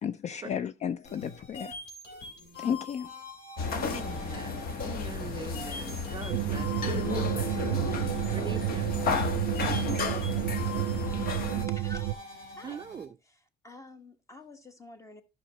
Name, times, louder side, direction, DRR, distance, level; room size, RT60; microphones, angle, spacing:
voice 1, 0.0-1.7 2.6-3.1, left 8 dB, 45° left, 0.4 m, -33 dB
sound 1, 1.0-13.0, left 2 dB, 75° left, 3.0 m, -45 dB
sound 2, 3.6-11.7, left 5 dB, 60° left, 1.1 m, -33 dB
voice 2, 3.7-9.0 12.6-13.2, right 6 dB, 25° right, 0.4 m, -43 dB
sound 3, 6.3-12.1, right 15 dB, 85° right, 0.4 m, -30 dB
voice 3, 9.9-10.9 11.6-12.2 12.5-12.8 13.6-15.2, left 2 dB, 20° left, 1.3 m, -46 dB
11.5 x 6.0 x 2.9 m
cardioid pair, 110°, 17 cm